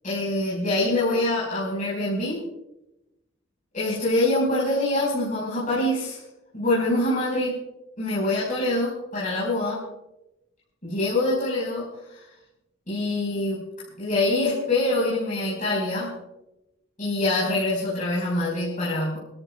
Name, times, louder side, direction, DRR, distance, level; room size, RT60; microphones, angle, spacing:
voice 1, 0.0-2.4 3.7-6.2 6.5-7.6 8.0-9.8 10.8-12.3 12.9-13.6 14.0-16.1 17.0-19.2, left 2 dB, 40° left, -7 dB, 5.1 m, -25 dB
29.5 x 13.0 x 2.4 m, 0.92 s
head